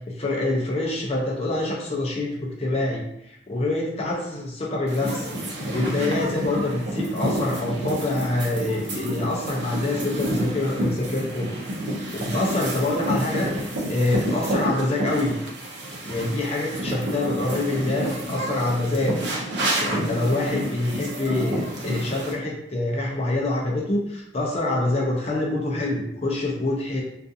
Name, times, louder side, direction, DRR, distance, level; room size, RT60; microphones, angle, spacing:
voice 1, 0.2-5.3 5.7-11.5 12.1-15.4 16.0-19.2 19.8-27.0, left 2 dB, 35° left, -2 dB, 0.5 m, -26 dB
sound 1, 4.9-22.3, right 1 dB, 70° right, 0.6 m, -29 dB
2.4 x 2.4 x 2.6 m, 0.78 s
head